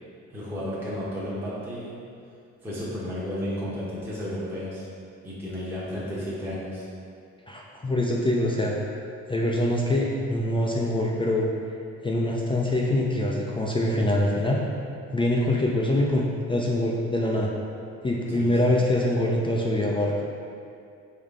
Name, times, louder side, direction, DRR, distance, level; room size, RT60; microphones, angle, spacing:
voice 1, 0.3-2.0 2.6-4.9 5.2-6.8 18.3-18.6, equal, 5° right, -9 dB, 0.8 m, -33 dB
voice 2, 7.5-8.7 9.3-11.5 12.0-14.7 15.1-17.5 18.0-20.1, left 1 dB, 15° left, -2 dB, 0.3 m, -24 dB
3.6 x 3.1 x 3.6 m, 2.4 s
cardioid pair, 90°, 30 cm